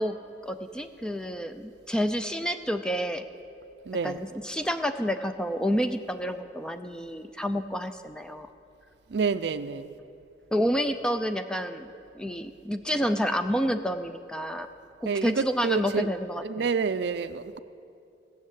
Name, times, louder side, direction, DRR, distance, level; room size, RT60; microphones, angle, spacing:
voice 1, 0.0-3.3 4.0-8.5 10.5-14.7 15.0-16.6, equal, 5° left, 8 dB, 0.4 m, -29 dB
voice 2, 3.9-4.2 9.1-9.9 15.0-16.1 16.4-17.6, right 5 dB, 65° right, 12 dB, 0.4 m, -28 dB
16.5 x 6.5 x 8.4 m, 2.6 s
head